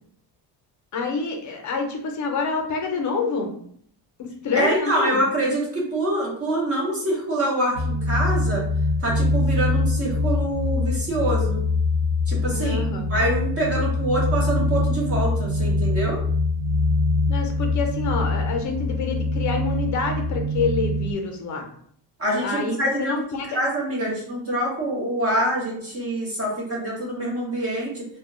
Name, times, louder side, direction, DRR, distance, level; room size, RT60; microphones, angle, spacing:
voice 1, 0.9-3.5 4.2-5.2 12.5-13.1 17.3-21.6 22.4-23.6 24.0-24.1, left 4 dB, 45° left, 3 dB, 0.5 m, -27 dB
voice 2, 4.5-8.6 9.0-11.6 12.3-12.8 13.1-16.2 22.2-23.2 23.4-28.1, right 1 dB, 35° right, -3 dB, 0.7 m, -25 dB
sound 1, 7.7-21.1, left 2 dB, 70° right, 0.7 m, -23 dB
2.2 x 2.1 x 3.6 m, 0.63 s
cardioid pair, 170°, 42 cm